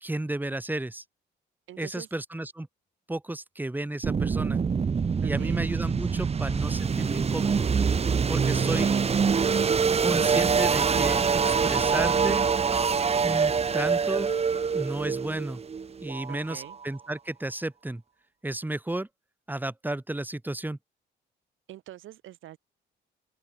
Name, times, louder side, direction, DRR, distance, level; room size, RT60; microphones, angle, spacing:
voice 1, 0.0-1.0 1.8-2.7 3.1-4.6 5.2-7.7 8.3-8.9 10.0-12.4 13.2-14.3 14.7-15.6 16.0-18.0 18.4-19.1 19.5-20.8, right 1 dB, 10° right, 2.8 m, -32 dB
voice 2, 1.7-2.1 5.2-5.6 8.6-9.1 16.3-16.8 21.7-22.6, right 14 dB, 80° right, 3.2 m, -44 dB
sound 1, 4.0-16.9, right 6 dB, 30° right, 0.9 m, -25 dB
open air
cardioid pair, 90°, 20 cm